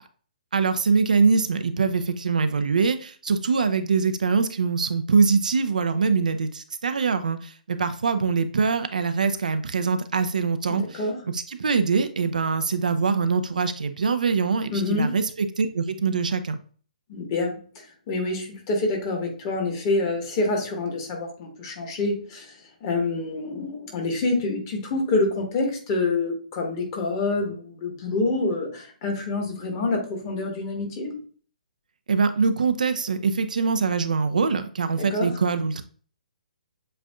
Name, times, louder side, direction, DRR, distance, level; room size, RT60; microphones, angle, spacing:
voice 1, 0.5-11.0 11.3-16.6 32.1-35.8, right 5 dB, 65° right, 10 dB, 0.4 m, -23 dB
voice 2, 10.7-11.1 14.7-15.1 17.1-22.5 22.8-31.1 35.0-35.3, left 3 dB, 30° left, 1 dB, 1.4 m, -27 dB
7.6 x 2.5 x 2.3 m, 0.43 s
figure-of-eight pair, 130°, 5 cm